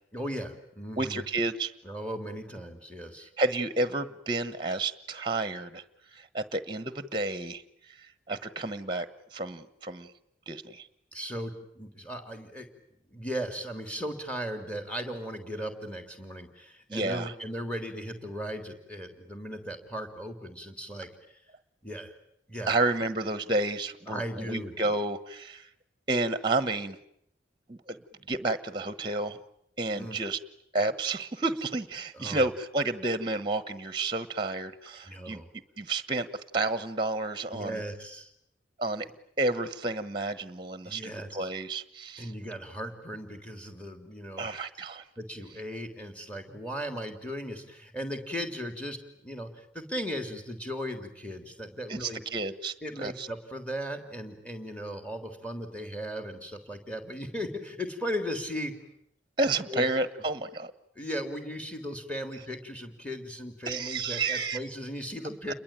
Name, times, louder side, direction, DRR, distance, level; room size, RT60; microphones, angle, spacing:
voice 1, 0.1-1.2 1.8-3.3 11.1-12.7 13.1-21.4 21.8-22.1 22.5-22.7 24.1-24.7 29.9-30.2 32.1-32.5 35.1-35.5 37.5-38.3 40.8-41.5 42.2-44.5 45.2-52.2 52.8-58.7 59.7-59.9 60.9-65.5, equal, 5° left, 7 dB, 3.3 m, -37 dB
voice 2, 1.0-1.7 3.4-5.8 6.1-8.0 8.3-9.1 9.3-10.1 10.5-10.9 16.9-17.3 22.7-25.7 26.1-27.0 27.7-28.0 28.3-29.4 29.8-30.4 30.7-35.4 35.8-36.3 36.5-37.8 38.8-39.1 39.4-42.3 44.4-45.0 51.9-53.3 59.4-60.7 63.7-64.6 65.5-65.6, right 2 dB, 25° right, 13 dB, 1.1 m, -30 dB
29.0 x 22.0 x 9.0 m, 0.74 s
head